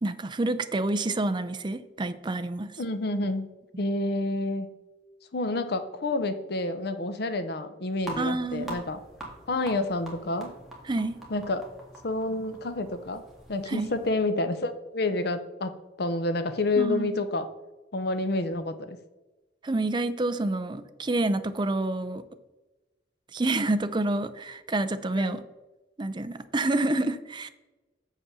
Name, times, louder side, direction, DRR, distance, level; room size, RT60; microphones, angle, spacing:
voice 1, 0.0-2.8 8.2-8.8 10.8-11.2 13.7-13.9 16.8-17.2 19.6-22.2 23.3-25.4 26.0-27.5, right 2 dB, 25° right, 11 dB, 0.5 m, -28 dB
voice 2, 2.8-3.5 3.8-4.7 5.3-9.0 9.5-10.5 11.3-11.6 12.0-13.2 13.5-15.7 16.0-17.5 17.9-19.0 25.2-25.4, left 2 dB, 60° left, 10 dB, 0.7 m, -29 dB
sound 1, 8.0-14.1, right 1 dB, ahead, 1.9 m, -44 dB
7.0 x 5.6 x 6.1 m, 1.1 s
head